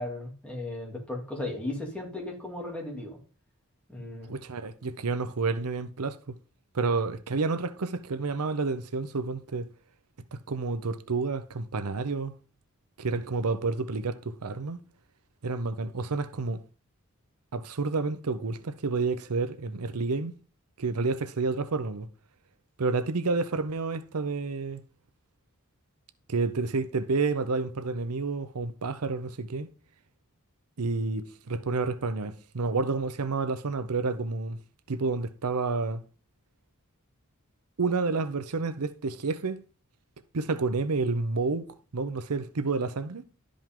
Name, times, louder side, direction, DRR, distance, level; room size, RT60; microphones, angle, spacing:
voice 1, 0.0-3.2 3.9-4.3, left 1 dB, 5° left, 2.7 m, -36 dB
voice 2, 4.3-6.4 6.7-9.7 10.3-12.3 13.0-14.8 15.4-16.6 17.5-20.3 20.8-22.1 22.8-24.8 26.3-29.7 30.8-34.6 34.9-36.0 37.8-39.6 40.3-41.7 41.9-43.2, right 4 dB, 85° right, 0.7 m, -29 dB
12.0 x 5.3 x 3.7 m
head